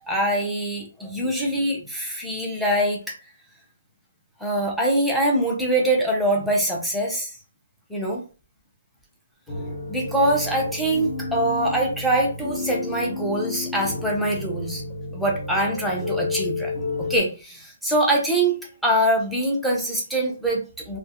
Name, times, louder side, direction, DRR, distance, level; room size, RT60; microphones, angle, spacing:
voice 1, 0.0-3.2 4.4-7.3 7.9-8.2 9.6-14.8 15.1-16.7 17.0-21.0, right 1 dB, ahead, -3 dB, 0.4 m, -24 dB
sound 1, 9.5-17.2, left 3 dB, 25° left, 0.8 m, -31 dB
2.3 x 2.3 x 2.7 m, 0.35 s
hypercardioid pair, 175°, 0 cm